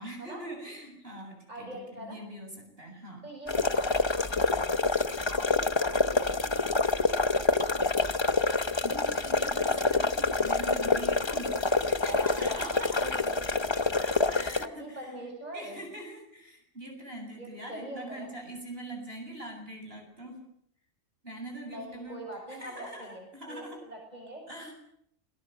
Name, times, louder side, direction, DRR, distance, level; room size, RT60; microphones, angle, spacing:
voice 1, 0.0-3.3 8.4-13.1 13.8-20.4 21.2-22.2 22.5-23.8 24.5-24.7, right 1 dB, 50° right, 1 dB, 8.2 m, -43 dB
voice 2, 1.5-2.2 3.2-4.8 5.3-8.2 12.0-13.7 14.6-15.8 17.4-18.3 21.7-24.4, right 1 dB, 35° right, 1 dB, 7.5 m, -43 dB
sound 1, 3.5-14.7, left 3 dB, 25° left, 0.9 m, -27 dB
28.5 x 19.5 x 7.9 m, 0.72 s
omnidirectional pair, 1.3 m